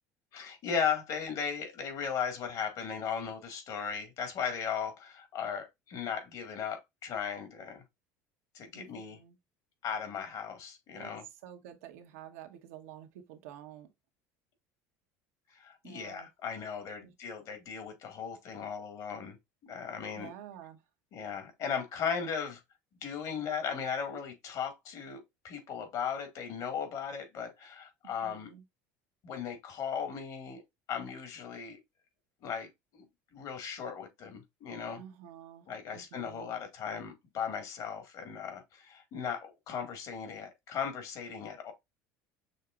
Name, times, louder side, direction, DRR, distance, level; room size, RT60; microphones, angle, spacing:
voice 1, 0.3-7.8 8.5-9.2 9.8-11.2 15.5-19.4 19.6-20.3 21.1-22.6 23.0-28.5 29.2-30.6 30.9-31.8 32.4-33.0 33.3-35.0 35.7-41.7, left 7 dB, 55° left, 1.8 m, -37 dB
voice 2, 8.7-9.4 11.0-13.9 15.8-16.3 17.0-17.1 20.2-20.8 28.2-28.6 35.0-35.7 35.9-36.5, right 10 dB, 85° right, 1.1 m, -49 dB
6.4 x 2.9 x 2.4 m
supercardioid pair, 105°, 8 cm